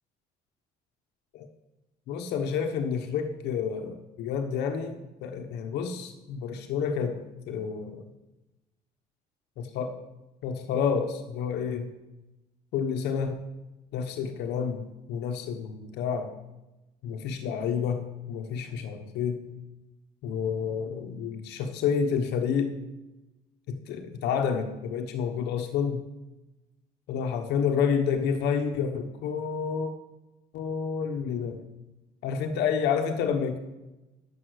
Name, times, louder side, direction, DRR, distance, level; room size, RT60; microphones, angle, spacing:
voice 1, 2.1-8.0 9.7-10.0 10.4-11.9 12.7-13.4 13.9-16.3 17.0-19.6 20.2-22.8 23.7-26.0 27.1-29.9 30.5-31.6 32.2-33.6, left 6 dB, 85° left, 6 dB, 1.1 m, -29 dB
10.0 x 7.8 x 6.5 m, 1.0 s
cardioid pair, 110°, 17 cm